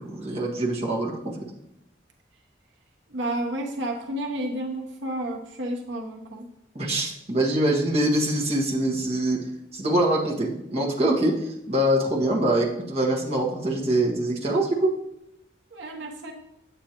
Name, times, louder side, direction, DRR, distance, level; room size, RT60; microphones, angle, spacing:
voice 1, 0.0-1.4 6.7-9.4 9.7-14.9, right 1 dB, 35° right, -3 dB, 1.5 m, -24 dB
voice 2, 3.1-6.5 15.7-16.3, right 1 dB, 80° right, 1 dB, 1.0 m, -31 dB
9.2 x 8.0 x 3.0 m, 0.83 s
head